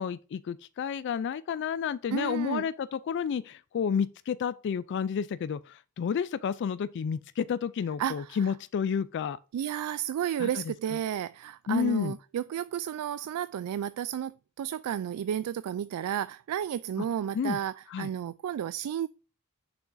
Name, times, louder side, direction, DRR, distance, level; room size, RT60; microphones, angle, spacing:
voice 1, 0.0-9.4 10.4-11.0 11.7-12.2 17.3-17.6 17.9-18.1, left 7 dB, 55° left, 0.3 m, -31 dB
voice 2, 2.1-2.7 8.0-8.4 9.5-19.1, right 9 dB, 80° right, 0.3 m, -32 dB
6.9 x 6.0 x 2.6 m
head